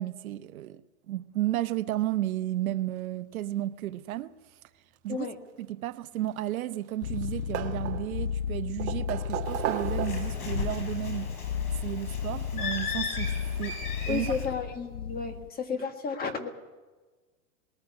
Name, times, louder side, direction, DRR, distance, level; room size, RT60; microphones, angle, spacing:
voice 1, 0.0-4.4 5.0-5.3 5.6-11.3 11.8-13.3 13.6-13.8 14.1-14.3, right 14 dB, 70° right, 0.9 m, -33 dB
sound 1, 6.2-6.9 7.2-8.3 8.8-10.5 11.7-11.8 13.3-13.4 13.7-13.8, right 11 dB, 30° right, 1.4 m, -34 dB
sound 2, 7.0-15.5, left 8 dB, 40° left, 0.8 m, -34 dB
Bird, 9.5-14.5, left 4 dB, 90° left, 6.5 m, -37 dB
voice 2, 14.1-16.5, left 5 dB, 20° left, 1.7 m, -32 dB
20.0 x 14.5 x 9.8 m
hypercardioid pair, 140°, 44 cm